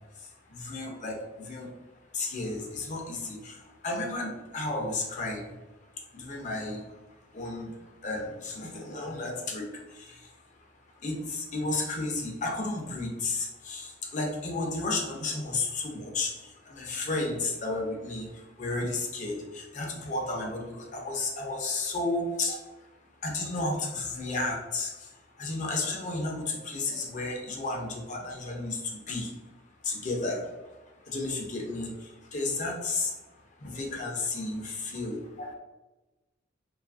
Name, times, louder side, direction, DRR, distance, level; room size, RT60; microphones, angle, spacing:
voice 1, 0.6-1.7 2.1-3.6 3.8-5.4 6.1-6.8 7.3-7.7 8.0-9.6 11.0-16.3 16.7-18.3 18.6-22.6 23.2-24.9 25.4-28.8 29.1-29.3 29.8-30.4 31.1-31.9 32.3-33.1 33.6-35.2, left 2 dB, 40° left, -1 dB, 0.5 m, -32 dB
2.8 x 2.4 x 2.3 m, 1.1 s
head